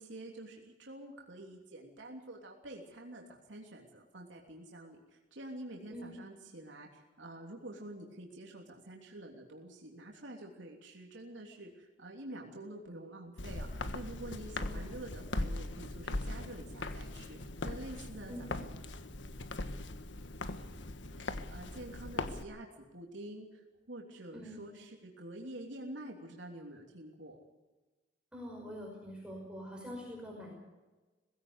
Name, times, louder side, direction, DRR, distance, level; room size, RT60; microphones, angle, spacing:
voice 1, 0.0-17.4 17.6-18.7 21.3-27.4, right 1 dB, 85° right, 0 dB, 3.2 m, -48 dB
Walk footsteps, 13.4-22.4, left 2 dB, 75° left, 1.4 m, -40 dB
voice 2, 14.6-14.9 18.3-18.4 24.3-24.7 28.3-30.5, equal, 5° right, -1 dB, 5.5 m, -45 dB
20.5 x 16.5 x 8.1 m, 1.2 s
head